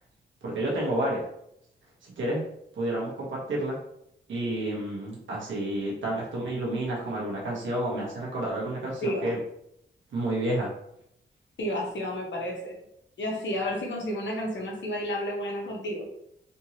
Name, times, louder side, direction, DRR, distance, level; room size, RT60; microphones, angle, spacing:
voice 1, 0.4-1.3 2.0-2.4 2.8-3.8 4.3-9.4 10.1-10.7, right 1 dB, 80° right, -5 dB, 1.2 m, -30 dB
voice 2, 11.6-12.8 13.2-16.1, equal, 70° left, -1 dB, 1.0 m, -31 dB
3.5 x 2.9 x 2.8 m, 0.75 s
cardioid pair, 75°, 19 cm